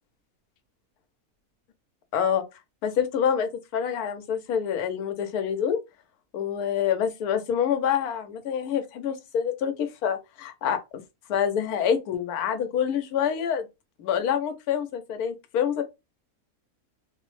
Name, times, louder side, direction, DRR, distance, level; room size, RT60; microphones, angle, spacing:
voice 1, 2.1-2.4 2.8-5.8 6.3-10.8 11.3-13.7 14.0-15.8, left 8 dB, 90° left, 1.1 m, -26 dB
3.0 x 2.0 x 3.0 m
omnidirectional pair, 1.5 m